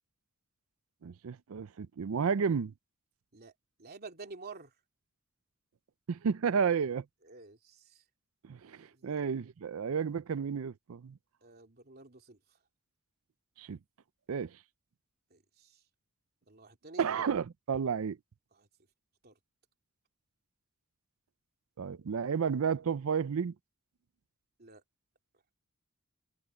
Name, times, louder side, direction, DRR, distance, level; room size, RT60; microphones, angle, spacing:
voice 1, 1.0-2.7 6.1-7.0 8.4-11.2 13.6-13.8 14.3-14.6 17.0-18.2 21.8-23.5, right 6 dB, 70° right, 0.5 m, -32 dB
voice 2, 3.8-4.7 7.2-8.0 8.8-9.2 11.4-12.6 15.3-15.8 16.5-17.1 18.5-18.7 19.2-19.4 24.6-24.8, right 4 dB, 45° right, 3.0 m, -50 dB
head